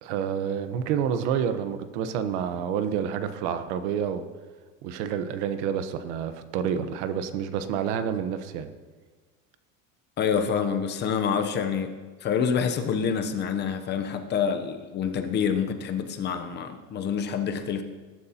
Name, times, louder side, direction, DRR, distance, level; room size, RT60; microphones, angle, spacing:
voice 1, 0.0-4.2 4.8-8.7, right 8 dB, 65° right, 10 dB, 1.1 m, -28 dB
voice 2, 10.2-11.9 12.2-17.8, left 7 dB, 30° left, 7 dB, 0.8 m, -27 dB
19.5 x 11.0 x 2.9 m, 1.4 s
cardioid pair, 160°, 38 cm